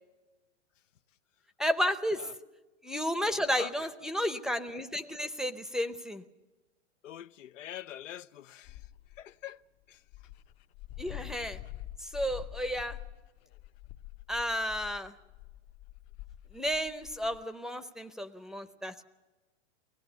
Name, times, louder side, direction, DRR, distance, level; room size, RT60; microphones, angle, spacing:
voice 1, 1.6-2.3 2.8-6.2 11.0-11.6 12.0-13.0 14.3-15.1 16.5-19.0, equal, ahead, 0.6 m, -32 dB
voice 2, 7.0-8.8 9.2-9.6 9.9-10.0, left 12 dB, 85° left, 0.7 m, -44 dB
Dog, 8.6-9.2 9.8-9.9 10.1-17.4, left 14 dB, 55° left, 1.1 m, -46 dB
24.0 x 18.5 x 6.8 m
hypercardioid pair, 125°, 37 cm